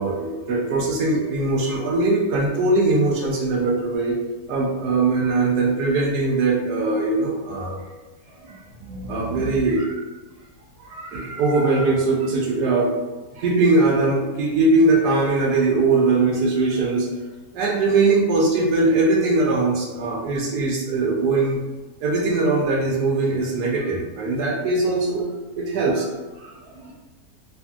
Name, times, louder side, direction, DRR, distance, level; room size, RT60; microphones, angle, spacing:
voice 1, 0.0-4.2 4.5-7.8 9.1-9.8 11.1-12.9 13.4-17.1 17.5-21.6 22.0-25.2 25.6-26.1, right 3 dB, 90° right, -2 dB, 1.1 m, -21 dB
voice 2, 8.5-9.8 10.8-11.8 13.4-13.5 26.4-27.0, right 1 dB, 60° right, -5 dB, 1.2 m, -36 dB
2.9 x 2.6 x 2.3 m, 1.2 s
omnidirectional pair, 1.7 m